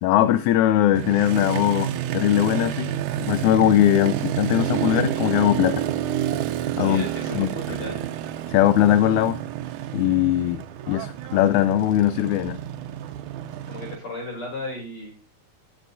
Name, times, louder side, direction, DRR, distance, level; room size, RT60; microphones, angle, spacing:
voice 1, 0.0-2.9 3.2-5.8 6.8-7.0 7.4-7.8 8.5-9.4 9.9-12.6, left 12 dB, 85° left, 11 dB, 2.1 m, -20 dB
Motorcycle, 1.0-14.0, right 11 dB, 85° right, 2.2 m, -29 dB
voice 2, 6.8-8.0 13.7-15.1, left 1 dB, 45° left, 0 dB, 6.4 m, -34 dB
19.5 x 8.4 x 2.7 m, 0.36 s
omnidirectional pair, 3.4 m